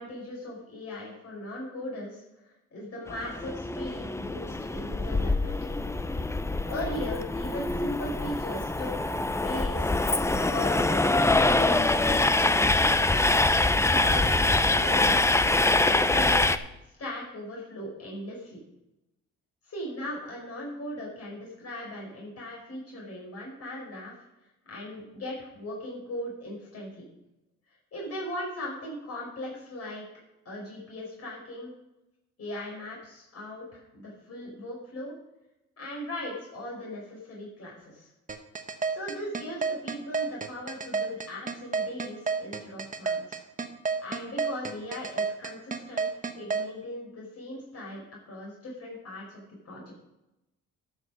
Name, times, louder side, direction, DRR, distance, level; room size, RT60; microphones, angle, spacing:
voice 1, 0.0-5.6 6.6-9.9 10.3-13.2 13.7-15.4 15.8-16.7 17.0-18.6 19.7-24.1 24.7-27.1 27.9-30.0 30.5-31.7 32.4-35.1 35.8-38.1 38.9-43.4 44.0-49.8, left 1 dB, 55° left, -3 dB, 5.2 m, -38 dB
Train, 3.1-16.6, left 2 dB, 10° left, 0.5 m, -24 dB
sound 1, 38.3-46.6, right 5 dB, 25° right, 1.2 m, -29 dB
12.5 x 6.5 x 6.5 m, 0.92 s
cardioid pair, 90°, 30 cm